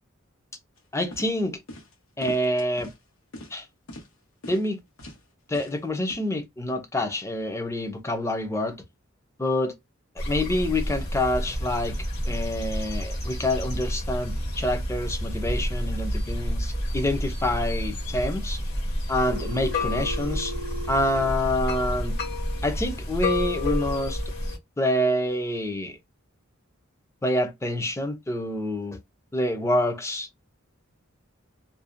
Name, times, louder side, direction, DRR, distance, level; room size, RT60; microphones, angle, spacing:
sound 1, 0.8-0.9 1.1-1.3 1.7-1.9 2.2-3.0 3.3-3.6 3.9-4.1 4.4-4.7 5.0-5.2 5.5-5.8 6.1-6.2, left 1 dB, 90° left, 0.9 m, -41 dB
voice 1, 0.9-1.6 2.2-2.9 3.5-3.7 4.5-4.8 5.5-8.8 9.4-9.8 10.3-12.0 12.3-18.6 19.1-20.5 20.9-22.2 22.6-24.2 24.8-26.0 27.2-29.0 29.3-30.4, left 1 dB, 15° left, 0.4 m, -27 dB
sound 2, 10.2-24.6, left 1 dB, 55° left, 0.9 m, -29 dB
Telephone, 19.3-21.3, right 1 dB, 85° right, 0.5 m, -37 dB
2.5 x 2.0 x 2.4 m
head